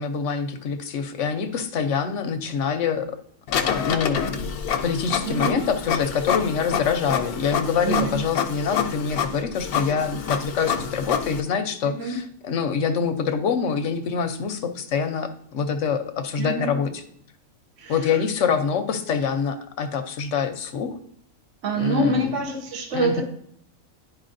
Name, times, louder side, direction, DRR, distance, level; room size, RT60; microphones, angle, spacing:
voice 1, 0.0-3.2 3.6-4.5 4.8-17.0 17.9-21.0 21.7-22.4 22.9-23.2, left 6 dB, 65° left, 7 dB, 0.9 m, -25 dB
Printer, 3.5-11.4, left 8 dB, 85° left, 1.2 m, -27 dB
voice 2, 5.2-5.5 7.8-8.2 11.9-12.2 16.4-16.7 17.8-17.9 21.6-23.2, right 2 dB, 60° right, 2 dB, 1.4 m, -25 dB
10.5 x 4.6 x 2.6 m, 0.67 s
omnidirectional pair, 1.5 m